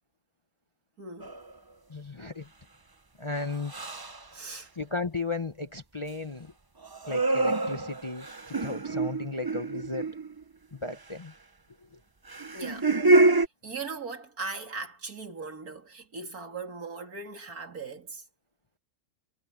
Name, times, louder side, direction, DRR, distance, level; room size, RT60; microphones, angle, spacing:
voice 1, 1.0-1.4 4.3-4.7 12.5-12.9 13.3-18.3, right 4 dB, 80° right, 3.4 m, -39 dB
sound 1, 1.2-1.5 3.7-4.2 6.8-10.4 12.3-13.5, right 2 dB, 20° right, 0.6 m, -26 dB
voice 2, 1.9-2.5 3.2-3.7 4.8-6.5 7.1-10.1 10.7-11.3, left 3 dB, 25° left, 0.8 m, -35 dB
omnidirectional pair, 1.6 m